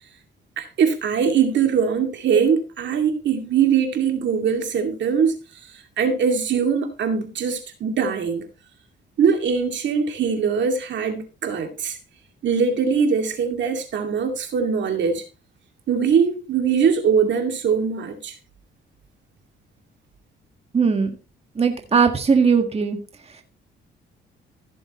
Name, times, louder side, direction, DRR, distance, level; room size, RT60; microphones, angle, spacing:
voice 1, 0.6-5.4 6.0-8.5 9.2-12.0 12.4-15.2 15.9-18.4, right 6 dB, 65° right, 2.4 m, -21 dB
voice 2, 20.7-21.1 21.6-23.0, right 5 dB, 30° right, 1.7 m, -19 dB
15.5 x 7.0 x 3.1 m
cardioid pair, 90°, 20 cm